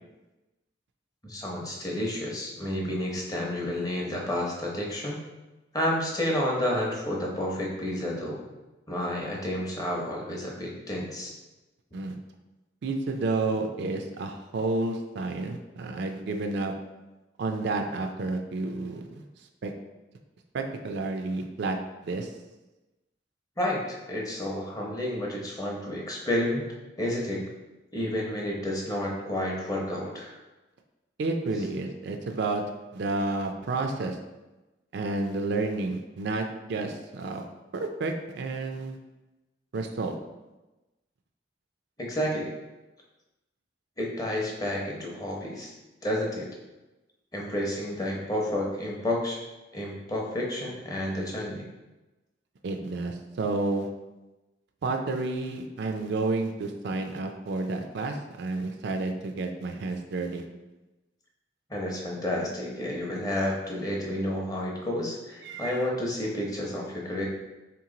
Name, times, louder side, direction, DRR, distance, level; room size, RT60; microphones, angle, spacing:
voice 1, 1.2-5.2 5.7-8.4 8.9-11.3 23.6-26.6 27.0-27.4 27.9-30.4 42.0-42.5 44.0-45.7 46.0-46.5 47.3-49.4 49.7-51.6 61.7-67.2, left 1 dB, 20° left, -2 dB, 0.7 m, -30 dB
voice 2, 12.8-16.7 17.4-19.2 19.6-19.7 20.5-22.3 31.2-32.6 32.9-34.2 34.9-37.4 37.7-39.0 39.7-40.2 52.6-53.9 54.8-60.4 65.4-65.8, right 3 dB, 60° right, 5 dB, 0.4 m, -30 dB
3.6 x 3.0 x 3.7 m, 1.1 s
head